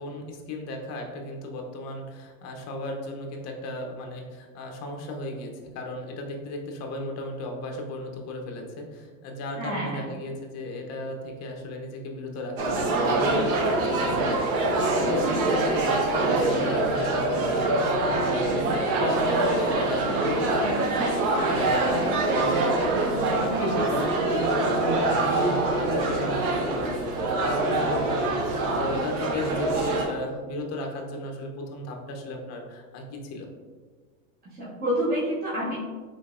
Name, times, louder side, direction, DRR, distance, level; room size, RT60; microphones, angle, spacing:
voice 1, 0.0-21.9 22.4-22.6 23.1-33.5, left 2 dB, 35° left, 2 dB, 0.7 m, -36 dB
voice 2, 9.6-10.1 23.5-23.7 34.6-35.8, equal, 20° right, -8 dB, 0.9 m, -28 dB
sound 1, 12.6-30.0, right 2 dB, 65° right, 0.9 m, -24 dB
3.7 x 3.4 x 2.4 m, 1.5 s
supercardioid pair, 130°, 46 cm